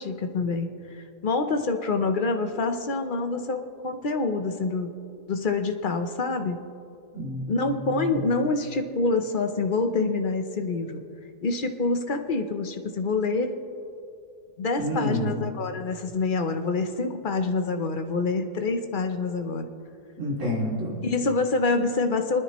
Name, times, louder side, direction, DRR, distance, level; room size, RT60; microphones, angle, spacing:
voice 1, 0.0-4.9 5.3-6.6 7.5-11.0 11.4-13.5 14.6-19.7 21.0-22.4, left 3 dB, 45° left, 6 dB, 0.7 m, -26 dB
voice 2, 7.1-8.3 14.8-15.4 20.2-21.0, left 1 dB, 50° right, -4 dB, 3.2 m, -29 dB
29.5 x 10.0 x 3.1 m, 2.6 s
omnidirectional pair, 1.7 m